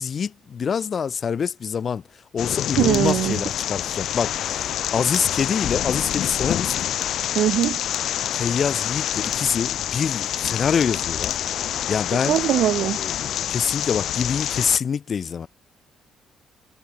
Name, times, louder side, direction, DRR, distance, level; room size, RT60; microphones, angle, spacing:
voice 1, 0.0-2.0 2.3-6.7 8.3-11.4 11.9-12.4 12.9-15.5, left 7 dB, 50° left, 1.8 m, -25 dB
sound 1, 2.4-14.8, left 11 dB, 75° left, 6.8 m, -27 dB
voice 2, 2.8-3.4 7.3-7.8 12.3-13.0, right 12 dB, 75° right, 3.1 m, -21 dB
cardioid pair, 90°, 0 cm